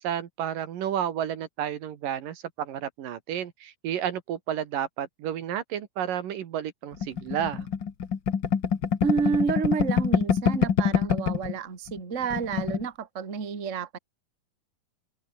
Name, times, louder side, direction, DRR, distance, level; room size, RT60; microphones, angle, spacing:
voice 1, 0.0-7.7, right 10 dB, 70° right, 3.2 m, -31 dB
sound 1, 7.0-11.5 11.9-12.0 12.2-12.8, left 7 dB, 40° left, 1.8 m, -25 dB
voice 2, 9.0-14.0, right 5 dB, 25° right, 2.0 m, -29 dB
open air
omnidirectional pair, 4.1 m